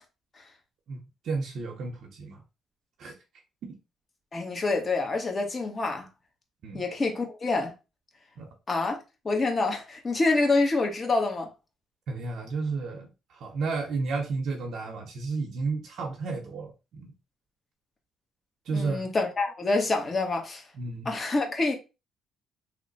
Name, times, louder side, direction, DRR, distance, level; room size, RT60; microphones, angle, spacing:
voice 1, 0.9-2.4 3.0-3.1 6.6-6.8 8.4-8.5 12.1-17.1 18.7-19.0 20.8-21.1, right 4 dB, 70° right, 0.7 m, -32 dB
voice 2, 4.3-6.1 6.7-7.7 8.7-9.0 9.2-11.5 18.7-20.6 21.0-21.7, left 3 dB, 35° left, 1.1 m, -26 dB
3.0 x 2.1 x 3.9 m
cardioid pair, 90°, 0 cm